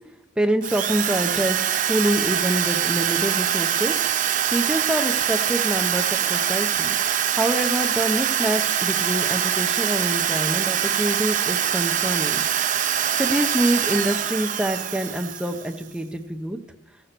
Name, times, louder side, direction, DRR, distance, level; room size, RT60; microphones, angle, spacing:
voice 1, 0.4-3.9 4.5-7.0 7.4-12.4 13.2-16.6, right 1 dB, 5° right, 3 dB, 0.7 m, -26 dB
Drill, 0.6-15.8, right 9 dB, 40° right, 0.4 m, -24 dB
14.5 x 5.9 x 6.7 m, 0.95 s
head